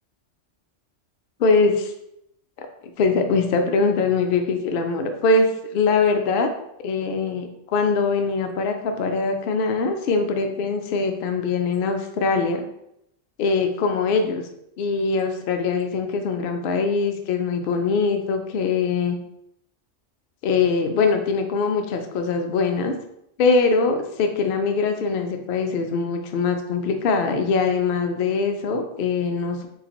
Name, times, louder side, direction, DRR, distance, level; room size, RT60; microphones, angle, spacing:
voice 1, 1.4-1.9 2.6-6.5 6.8-12.6 13.4-14.4 14.8-19.2 20.4-22.9 23.4-29.7, left 4 dB, 60° left, 5 dB, 0.6 m, -22 dB
4.1 x 3.8 x 2.9 m, 0.79 s
omnidirectional pair, 1.3 m